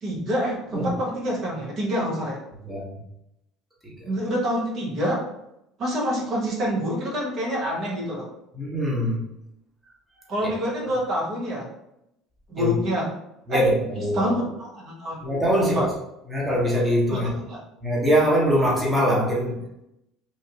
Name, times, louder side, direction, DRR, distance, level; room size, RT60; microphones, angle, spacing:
voice 1, 0.0-2.4 4.1-5.2 5.8-8.3 10.3-11.6 12.5-13.1 13.5-13.6 14.1-15.2 15.6-15.9 17.1-17.6, equal, 50° right, -3 dB, 1.1 m, -26 dB
voice 2, 8.5-9.3 10.4-10.5 12.6-12.8 13.5-14.3 15.2-15.9 16.3-17.3 17.8-19.6, equal, 10° right, -5 dB, 1.1 m, -23 dB
3.1 x 2.5 x 2.8 m, 0.83 s
hypercardioid pair, 75°, 0 cm